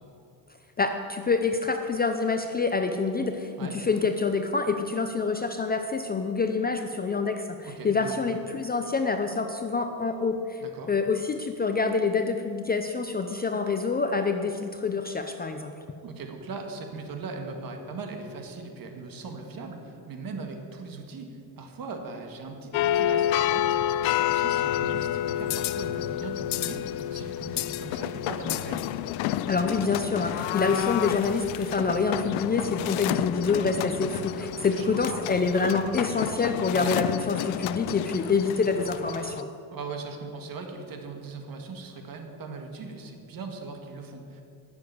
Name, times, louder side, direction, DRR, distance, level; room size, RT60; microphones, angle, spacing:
voice 1, 0.8-10.6 10.9-15.7 29.5-39.5, left 4 dB, 20° left, 6 dB, 0.5 m, -26 dB
voice 2, 7.6-8.2 10.6-10.9 16.0-28.9 34.5-35.2 36.7-36.9 39.7-44.4, right 4 dB, 50° right, 4 dB, 1.8 m, -39 dB
sound 1, 22.7-39.4, left 12 dB, 85° left, 0.6 m, -29 dB
11.5 x 7.1 x 9.6 m, 2.6 s
cardioid pair, 135°, 46 cm